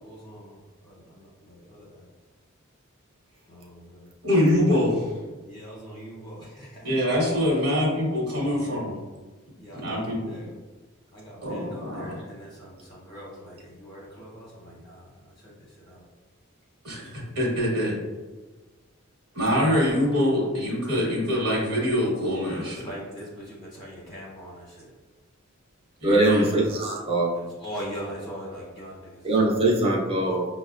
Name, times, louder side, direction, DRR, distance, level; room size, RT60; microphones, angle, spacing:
voice 1, 0.0-2.1 3.5-4.1 5.4-6.9 8.3-8.8 9.6-10.5 11.1-15.1 15.4-16.0 17.0-17.3 22.2-24.9 27.3-29.8, equal, 25° left, -6 dB, 0.7 m, -42 dB
voice 2, 4.2-5.1 6.8-9.0 9.7-10.3 11.4-12.2 16.8-17.9 19.3-22.9 26.0-26.5, left 1 dB, 70° right, -5 dB, 1.0 m, -24 dB
voice 3, 26.0-27.3 29.2-30.5, right 2 dB, 25° right, -3 dB, 0.5 m, -22 dB
5.7 x 2.1 x 2.4 m, 1.3 s
head